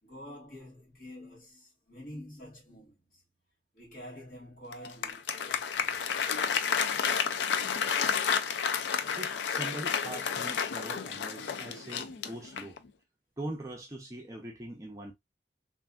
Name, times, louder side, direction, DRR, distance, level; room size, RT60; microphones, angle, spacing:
voice 1, 0.0-3.2 3.7-6.1, equal, 50° left, 1.8 m, -48 dB
Applause, 4.7-12.9, left 7 dB, 80° left, 0.4 m, -31 dB
voice 2, 9.2-12.8 13.4-15.1, right 1 dB, 20° right, 0.5 m, -42 dB
3.3 x 2.5 x 2.3 m
head